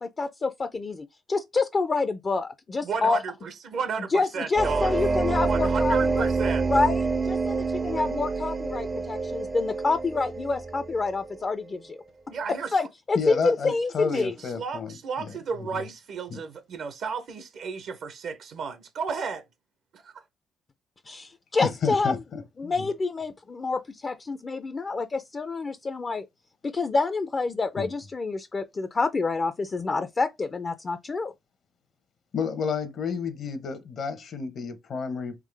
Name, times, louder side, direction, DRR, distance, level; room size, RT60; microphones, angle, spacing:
voice 1, 0.0-3.2 4.1-6.2 6.7-12.0 12.7-14.3 21.1-22.2 22.6-26.3 26.6-31.3, left 3 dB, 35° left, 0.4 m, -27 dB
voice 2, 2.8-4.9 5.4-6.6 12.3-12.7 14.5-19.4 20.0-20.2, right 5 dB, 70° right, 0.6 m, -33 dB
sound 1, 4.6-11.1, right 4 dB, 30° right, 0.4 m, -27 dB
voice 3, 13.1-15.8 16.3-16.4 21.6-22.9 27.8-27.9 32.3-35.3, left 5 dB, 60° left, 0.8 m, -31 dB
3.6 x 3.2 x 3.3 m
cardioid pair, 90°, 0 cm